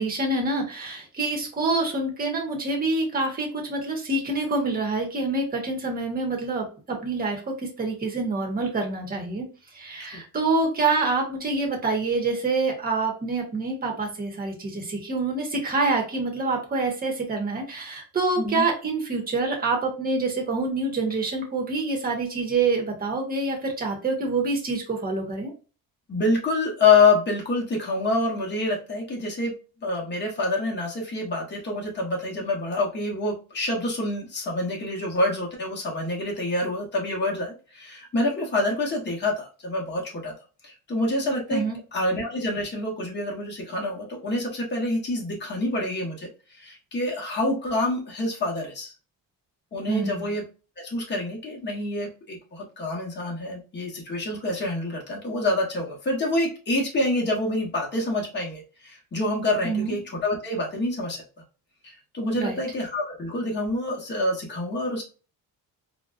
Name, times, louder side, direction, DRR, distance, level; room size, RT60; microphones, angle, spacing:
voice 1, 0.0-9.5 9.7-25.5 41.5-41.8 49.9-50.3 59.6-60.0 62.3-62.6, right 3 dB, 25° right, 0 dB, 0.9 m, -26 dB
voice 2, 26.1-29.5 29.8-40.3 40.6-41.6 41.9-46.3 46.6-48.9 49.7-50.4 50.8-61.2 61.8-65.0, left 2 dB, 30° left, -1 dB, 1.0 m, -26 dB
3.9 x 2.2 x 2.4 m, 0.35 s
cardioid pair, 170°, 35 cm